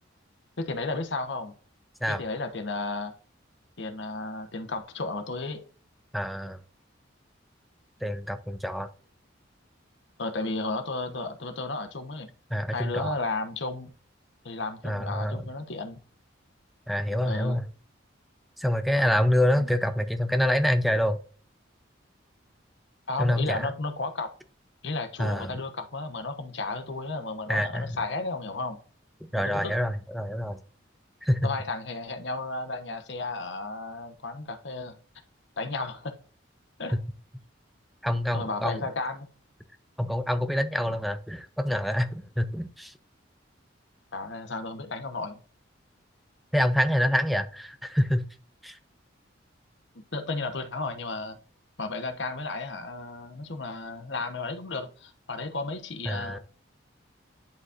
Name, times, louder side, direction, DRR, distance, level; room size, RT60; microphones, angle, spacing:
voice 1, 0.6-1.5 2.1-3.1 3.8-5.6 10.2-12.3 12.7-13.9 14.4-16.0 17.2-17.6 19.6-19.7 23.1-24.3 24.8-28.8 29.4-29.7 31.4-35.0 35.6-36.1 36.8-37.0 38.3-39.3 44.1-45.4 49.9-51.4 51.8-56.4, left 3 dB, 65° left, 1.0 m, -33 dB
voice 2, 6.1-6.6 8.0-8.9 12.5-13.2 14.8-15.4 16.9-17.7 18.6-21.2 23.2-23.7 25.2-25.6 27.5-28.0 29.2-30.6 31.2-31.5 38.0-38.8 40.0-42.9 46.5-48.2 48.6-48.8 56.1-56.4, equal, ahead, 0.5 m, -26 dB
10.5 x 4.1 x 2.5 m
head